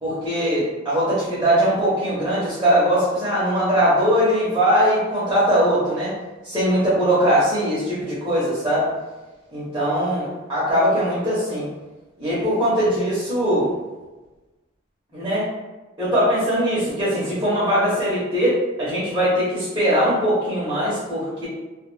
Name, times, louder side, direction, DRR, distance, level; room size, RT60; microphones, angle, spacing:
voice 1, 0.0-6.1 6.4-8.9 9.5-11.7 12.2-13.7 15.1-15.5 16.0-21.5, equal, 15° right, -10 dB, 0.7 m, -21 dB
2.2 x 2.2 x 3.1 m, 1.2 s
head